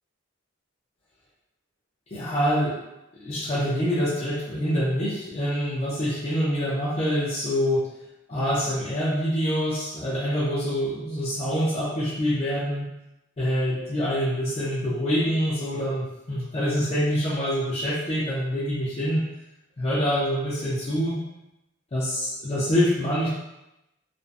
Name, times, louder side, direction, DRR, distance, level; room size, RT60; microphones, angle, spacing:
voice 1, 2.1-2.8 3.2-7.9 8.3-12.9 13.4-19.2 19.8-21.2 21.9-23.3, equal, 30° left, -8 dB, 0.4 m, -25 dB
2.5 x 2.1 x 2.5 m, 0.90 s
head